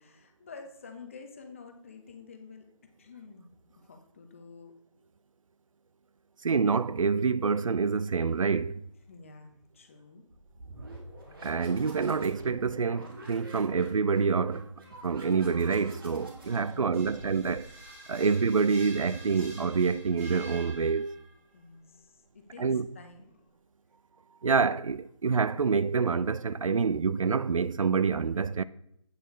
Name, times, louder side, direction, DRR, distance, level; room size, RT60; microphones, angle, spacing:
voice 1, 0.0-2.6 3.0-3.5 3.8-4.7 9.1-10.2 21.5-23.4, left 4 dB, 25° left, 0.8 m, -49 dB
voice 2, 6.4-8.8 11.4-14.7 15.0-17.7 18.1-21.1 22.6-22.9 24.4-28.6, right 5 dB, 85° right, 0.4 m, -27 dB
sound 1, 10.3-17.9, right 1 dB, 45° right, 2.2 m, -48 dB
sound 2, 16.2-21.4, right 2 dB, 25° right, 3.2 m, -48 dB
8.4 x 7.6 x 3.1 m
figure-of-eight pair, 160°, 17 cm